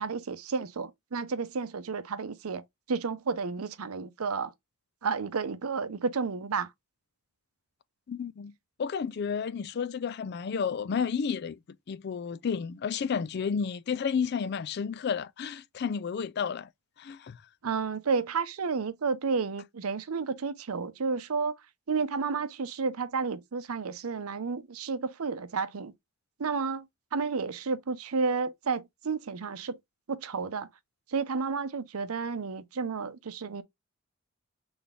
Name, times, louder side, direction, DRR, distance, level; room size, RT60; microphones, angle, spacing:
voice 1, 0.0-2.6 2.9-4.5 5.0-6.7 17.6-21.6 21.9-25.9 26.4-26.9 27.1-29.8 30.1-30.7 31.1-33.6, right 5 dB, 90° right, 0.6 m, -31 dB
voice 2, 8.1-8.5 8.8-11.6 11.9-16.7 17.0-17.4, left 6 dB, 50° left, 0.4 m, -31 dB
4.0 x 3.4 x 3.5 m
head